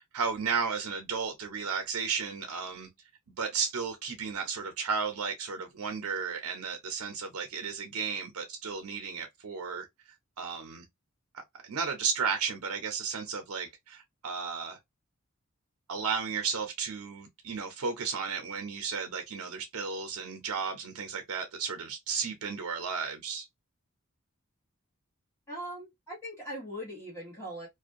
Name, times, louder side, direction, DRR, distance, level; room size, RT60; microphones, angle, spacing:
voice 1, 0.1-2.9 3.4-9.9 10.4-10.8 11.3-14.8 15.9-23.4, right 5 dB, 85° right, 0.6 m, -34 dB
voice 2, 25.5-27.7, equal, 10° left, 1.0 m, -40 dB
2.5 x 2.2 x 2.5 m
head